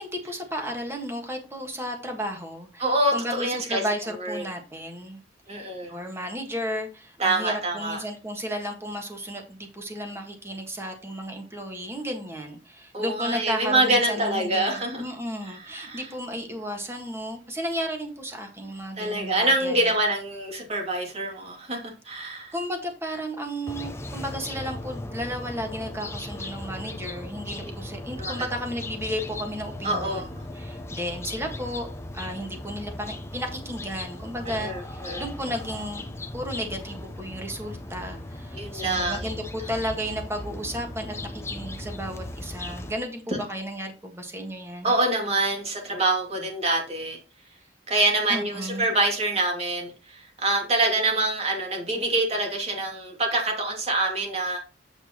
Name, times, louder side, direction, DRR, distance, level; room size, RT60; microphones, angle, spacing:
voice 1, 0.0-5.2 5.5-19.9 22.5-31.9 32.1-36.1 36.3-45.0 48.3-48.9, equal, 15° right, 4 dB, 1.6 m, -33 dB
voice 2, 2.8-3.8 4.2-4.4 5.5-5.9 7.2-8.0 12.9-15.0 15.6-16.1 19.0-22.5 28.2-28.3 29.8-30.2 34.5-35.2 38.5-39.3 44.8-47.2 47.9-54.6, right 2 dB, 35° right, 1 dB, 2.5 m, -25 dB
sound 1, 23.7-42.9, left 1 dB, 15° left, 0.6 m, -37 dB
8.0 x 6.6 x 3.0 m, 0.33 s
head